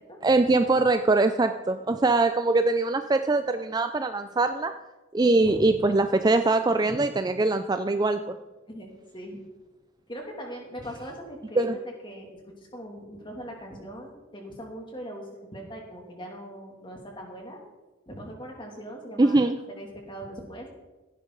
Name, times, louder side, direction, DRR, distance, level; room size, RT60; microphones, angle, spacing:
voice 1, 0.2-4.7 5.1-8.3 11.6-11.8 19.2-19.6, right 2 dB, 20° right, 9 dB, 0.4 m, -22 dB
voice 2, 5.2-6.0 8.7-9.4 10.1-11.7 12.0-12.3 12.6-17.6 18.1-19.4 19.8-20.7, equal, 25° left, 1 dB, 2.6 m, -40 dB
15.5 x 11.0 x 3.9 m, 1.1 s
head